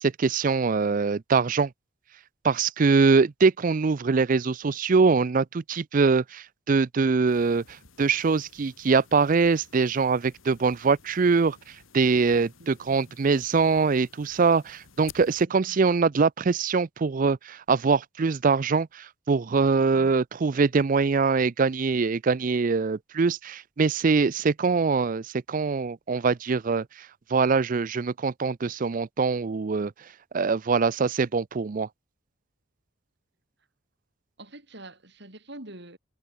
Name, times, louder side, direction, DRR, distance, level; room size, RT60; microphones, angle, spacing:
voice 1, 0.0-1.7 2.4-7.6 8.0-11.6 11.9-26.8 27.3-29.9 30.3-31.9, right 4 dB, 40° right, 0.4 m, -23 dB
sound 1, 7.3-15.5, left 6 dB, 80° left, 3.0 m, -53 dB
voice 2, 12.6-13.2 15.4-15.8 24.4-24.5 34.4-36.0, right 1 dB, 55° right, 5.1 m, -46 dB
head